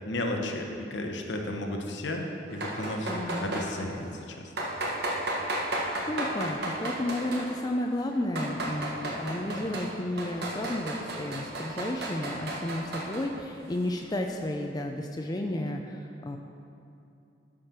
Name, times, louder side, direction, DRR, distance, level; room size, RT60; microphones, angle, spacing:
voice 1, 0.1-4.5, left 1 dB, 70° left, 2 dB, 1.1 m, -33 dB
sound 1, 2.5-3.7 4.6-7.6 8.1-9.9 10.2-13.3, right 1 dB, 60° right, 1.4 m, -33 dB
voice 2, 3.1-3.5 6.1-16.4, left 1 dB, 20° left, 3 dB, 0.5 m, -32 dB
11.5 x 5.0 x 5.9 m, 2.7 s
head